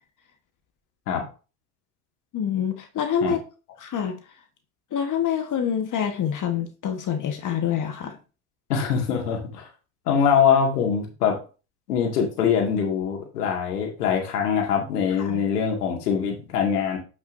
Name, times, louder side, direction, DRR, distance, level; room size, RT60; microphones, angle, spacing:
voice 1, 2.3-3.4 3.8-4.2 4.9-8.2 15.2-15.4, left 8 dB, 40° left, 6 dB, 1.4 m, -26 dB
voice 2, 8.7-9.7 10.1-11.4 11.9-17.0, left 7 dB, 90° left, 2 dB, 2.3 m, -23 dB
8.8 x 6.0 x 2.7 m, 0.33 s
hypercardioid pair, 85°, 45 cm